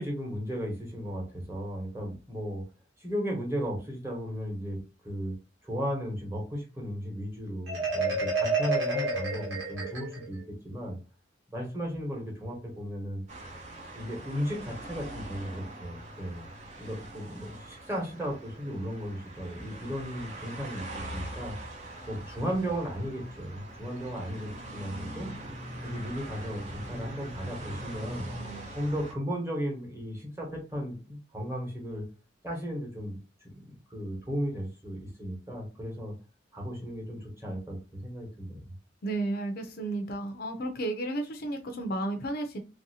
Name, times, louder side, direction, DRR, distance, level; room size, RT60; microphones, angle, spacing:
voice 1, 0.0-2.6 3.0-5.3 5.6-11.0 11.5-13.2 13.9-16.5 16.8-21.6 22.1-25.3 25.8-28.3 28.7-32.1 32.4-36.2 36.5-38.7, equal, 15° right, -1 dB, 1.1 m, -35 dB
Marimba xylophone, 7.7-10.4, right 3 dB, 85° right, 1.4 m, -30 dB
sound 1, 13.3-29.1, right 1 dB, 35° right, 0.7 m, -42 dB
voice 2, 39.0-42.6, right 2 dB, 50° left, 6 dB, 0.5 m, -32 dB
3.1 x 2.7 x 2.7 m, 0.33 s
head